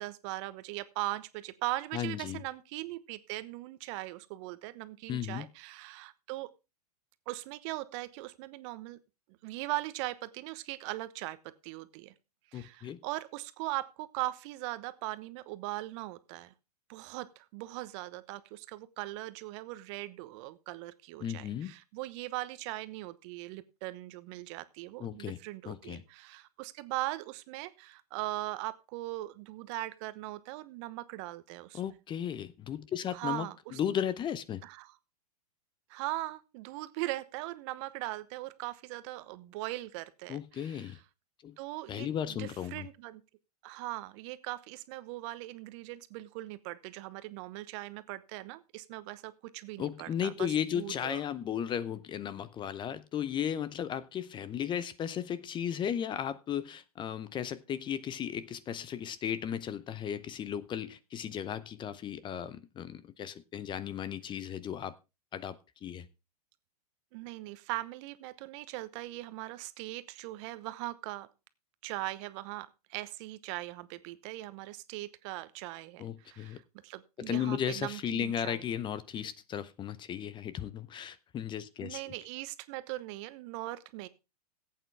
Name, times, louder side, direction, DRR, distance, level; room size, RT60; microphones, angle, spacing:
voice 1, 0.0-6.5 7.3-9.0 9.4-12.1 12.5-16.5 16.9-32.0 33.1-33.8 34.6-34.9 35.9-40.9 41.6-43.2 43.6-50.5 50.7-51.2 67.1-71.3 71.8-78.6 81.8-84.1, right 18 dB, 50° right, 1.0 m, -40 dB
voice 2, 1.9-2.4 5.1-5.5 12.5-13.0 21.2-21.7 25.0-25.4 25.6-26.0 31.7-34.6 40.3-41.0 41.4-41.6 41.9-42.9 49.8-64.9 65.3-66.1 76.0-76.6 77.2-82.1, left 9 dB, 25° left, 0.7 m, -35 dB
15.5 x 8.6 x 3.4 m
hypercardioid pair, 110°, 20 cm